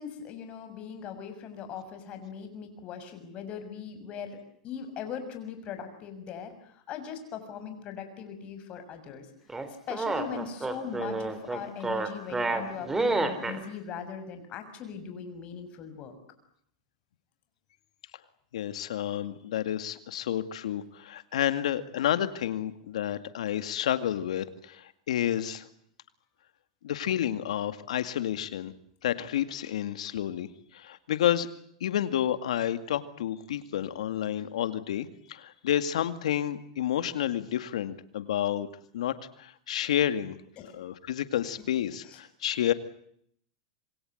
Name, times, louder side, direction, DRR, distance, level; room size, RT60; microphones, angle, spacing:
voice 1, 0.0-4.4 4.6-9.3 9.9-16.2 19.3-19.4 40.6-40.7 42.0-42.2, left 7 dB, 35° left, 8 dB, 6.7 m, -40 dB
sound 1, 9.5-13.6, right 3 dB, 10° right, 3.6 m, -29 dB
voice 2, 18.5-25.7 26.8-28.7 29.0-31.5 31.8-38.7 38.9-40.4 40.7-42.7, left 11 dB, 85° left, 11 dB, 2.1 m, -30 dB
27.0 x 23.0 x 8.0 m, 0.68 s
supercardioid pair, 135°, 3 cm